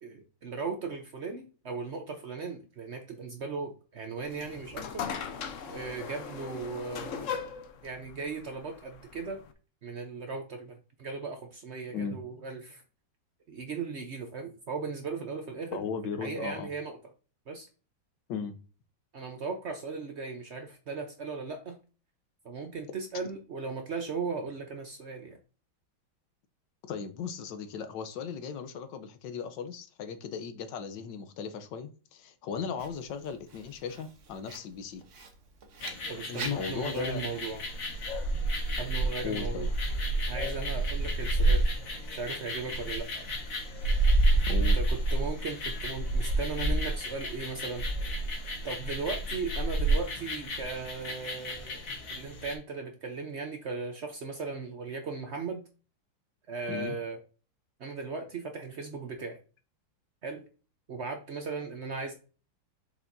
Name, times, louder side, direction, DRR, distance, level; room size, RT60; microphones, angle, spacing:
voice 1, 0.0-5.0 5.7-7.3 7.8-9.4 9.8-12.8 13.5-15.8 16.2-17.0 17.5-17.7 19.1-21.8 22.4-25.4 36.1-37.6 38.8-39.7 40.3-41.7 42.1-43.3 44.6-47.9 48.6-51.8 52.1-55.6 56.5-57.2 57.8-59.4 60.2-60.5 60.9-62.1, right 4 dB, 85° right, 0.6 m, -37 dB
sound 1, 4.2-9.5, left 7 dB, 80° left, 0.6 m, -39 dB
voice 2, 15.7-16.7 18.3-18.6 26.9-35.0 36.3-37.2 39.2-39.7 44.5-44.8 56.7-56.9, left 6 dB, 65° left, 1.3 m, -37 dB
Writing, 32.8-37.8, right 5 dB, 45° right, 1.1 m, -47 dB
sound 2, 35.8-52.5, right 1 dB, 45° left, 1.5 m, -30 dB
7.2 x 5.4 x 2.7 m
omnidirectional pair, 2.3 m